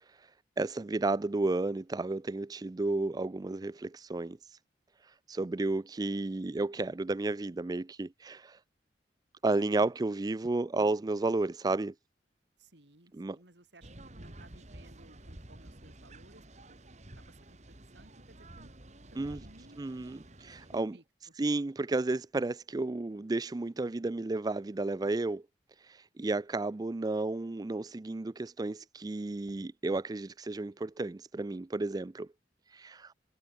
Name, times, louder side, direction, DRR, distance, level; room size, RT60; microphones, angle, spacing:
voice 1, 0.6-4.6 5.0-8.6 9.4-11.9 13.1-13.4 19.2-19.4 19.8-20.9 21.4-25.4 25.8-32.3 32.7-33.1, right 2 dB, 20° right, 0.4 m, -32 dB
voice 2, 12.6-16.8 17.1-18.7 19.1-20.3 20.7-21.3, right 1 dB, 75° right, 3.4 m, -58 dB
sound 1, 13.8-20.8, right 1 dB, 40° right, 2.5 m, -51 dB
head